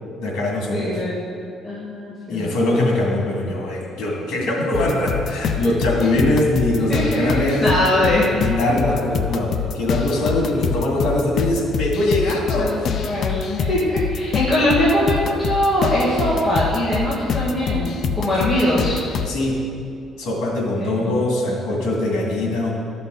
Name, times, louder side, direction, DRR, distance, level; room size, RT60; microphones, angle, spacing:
voice 1, 0.2-1.0 2.3-7.7 8.3-12.9 19.3-19.7 20.2-22.7, left 1 dB, 85° left, -2 dB, 2.2 m, -22 dB
voice 2, 0.7-1.3 1.6-2.5 5.6-5.7 6.9-8.3 8.6-8.7 12.6-17.9 18.2-19.0 20.8-21.2, left 1 dB, 15° left, -11 dB, 2.0 m, -21 dB
sound 1, 4.7-19.3, left 7 dB, 45° left, 0.4 m, -26 dB
13.0 x 5.9 x 3.9 m, 2.5 s
cardioid pair, 155°, 0 cm